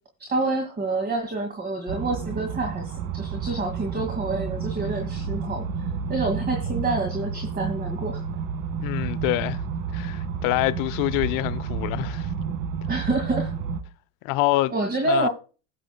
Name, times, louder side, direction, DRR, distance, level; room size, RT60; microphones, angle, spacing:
voice 1, 0.2-5.6 6.1-8.2 12.9-13.5 14.7-15.3, right 2 dB, 25° right, 2.0 m, -27 dB
sound 1, 1.9-13.8, right 6 dB, 60° right, 1.8 m, -30 dB
voice 2, 8.8-9.6 9.9-12.3 14.2-14.7 15.0-15.3, left 18 dB, 60° left, 0.7 m, -25 dB
17.5 x 7.7 x 2.2 m
supercardioid pair, 100°, 38 cm